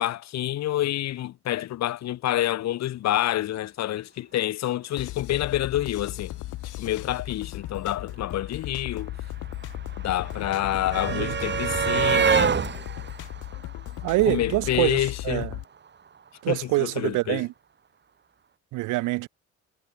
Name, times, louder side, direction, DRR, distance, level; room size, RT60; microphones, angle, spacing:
voice 1, 0.0-6.3 6.8-9.1 10.0-12.6 14.3-15.5 16.5-17.4, left 13 dB, 65° left, 0.7 m, -28 dB
techno beat, 5.0-15.6, left 17 dB, 85° left, 1.0 m, -36 dB
sound 1, 8.1-8.2 8.4-14.6 15.8-15.9 16.2-16.3, right 6 dB, 35° right, 1.3 m, -27 dB
voice 2, 14.0-15.5 16.4-17.5 18.7-19.3, right 20 dB, 85° right, 0.5 m, -25 dB
cardioid pair, 90°, 30 cm